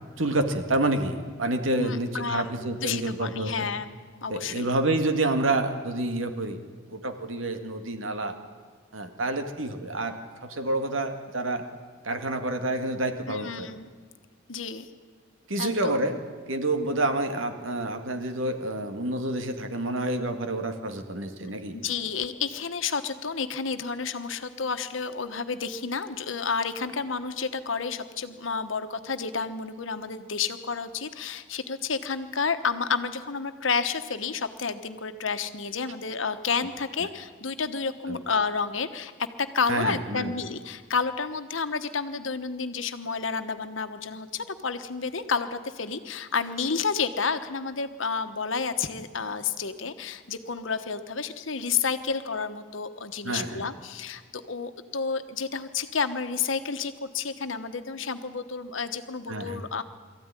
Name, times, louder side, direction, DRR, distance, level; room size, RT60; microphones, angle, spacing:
voice 1, 0.2-3.7 4.3-6.6 6.9-8.4 8.9-10.2 10.5-11.6 12.0-13.7 15.5-16.2 16.5-21.8 38.1-38.2 39.7-40.3 53.2-53.7 59.3-59.6, right 2 dB, 85° right, 6 dB, 2.0 m, -28 dB
voice 2, 1.8-4.7 13.3-13.9 14.5-14.9 15.6-16.1 21.8-39.1 39.4-59.8, left 5 dB, 85° left, 9 dB, 1.2 m, -30 dB
22.5 x 14.0 x 9.9 m, 1.5 s
head